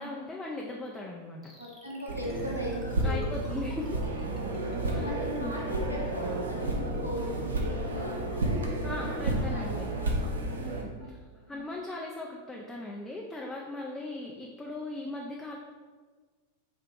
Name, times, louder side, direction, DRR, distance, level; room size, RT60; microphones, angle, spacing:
voice 1, 0.0-1.5 3.0-4.1 4.9-5.5 8.8-9.9 10.6-11.1 11.5-15.6, left 2 dB, 10° left, -2 dB, 0.4 m, -38 dB
sound 1, 1.4-6.7 6.9-7.0 7.3-7.4 7.6-7.7 8.0-8.1 8.3-8.4 8.7-8.8 9.1-9.2 9.6-9.7 10.1-10.2 10.5-10.6 11.0-11.1 11.5-11.6, right 1 dB, 5° right, 0.9 m, -50 dB
voice 2, 1.6-3.4 4.5-8.6 8.9-11.1 11.4-11.5, equal, 90° right, -5 dB, 1.0 m, -40 dB
sound 2, 2.1-10.8, right 1 dB, 70° right, 0.5 m, -31 dB
3.4 x 2.7 x 3.6 m, 1.4 s
figure-of-eight pair, 90°, 0 cm